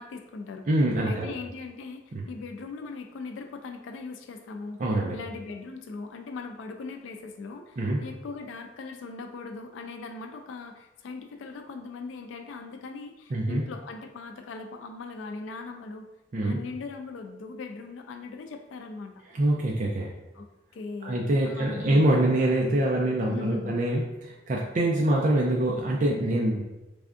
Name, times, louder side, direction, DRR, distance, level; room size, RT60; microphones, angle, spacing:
voice 1, 0.0-0.7 1.0-16.1 16.4-19.2 20.3-22.1 23.3-23.8, left 4 dB, 90° left, 5 dB, 0.3 m, -40 dB
voice 2, 0.7-1.3 2.1-2.2 4.8-5.2 7.8-8.0 13.3-13.6 16.3-16.6 19.3-20.1 21.0-26.6, right 1 dB, 45° right, -2 dB, 0.4 m, -25 dB
3.4 x 3.3 x 2.5 m, 1.1 s
head